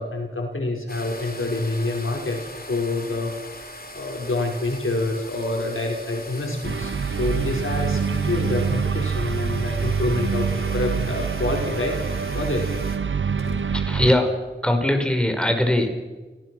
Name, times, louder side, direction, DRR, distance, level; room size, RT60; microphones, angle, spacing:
voice 1, 0.0-2.4 2.7-3.3 3.9-6.9 7.2-10.5 10.7-11.9 12.3-12.8 13.4-13.6, left 2 dB, 75° left, 1 dB, 5.0 m, -27 dB
sound 1, 0.9-13.0, left 1 dB, 45° left, 3.3 m, -40 dB
sound 2, 6.6-14.2, right 6 dB, 65° right, 0.8 m, -25 dB
voice 2, 13.7-16.0, left 1 dB, 5° left, 5 dB, 4.7 m, -21 dB
29.0 x 18.5 x 6.2 m, 1.2 s
wide cardioid pair, 45°, 21 cm